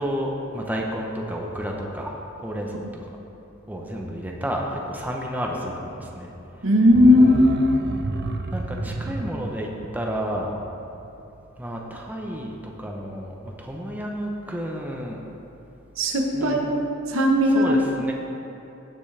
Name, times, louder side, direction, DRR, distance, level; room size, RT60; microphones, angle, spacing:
voice 1, 0.0-2.1 2.4-2.8 3.7-6.3 8.5-10.5 11.6-15.2 16.3-16.6 17.5-18.1, equal, 10° right, -1 dB, 0.8 m, -31 dB
voice 2, 6.6-7.6 16.0-16.7 17.1-17.7, left 1 dB, 65° right, 2 dB, 1.1 m, -17 dB
sound 1, 6.9-11.6 11.9-12.0, right 2 dB, 50° right, 0.7 m, -32 dB
17.0 x 6.1 x 3.4 m, 2.9 s
head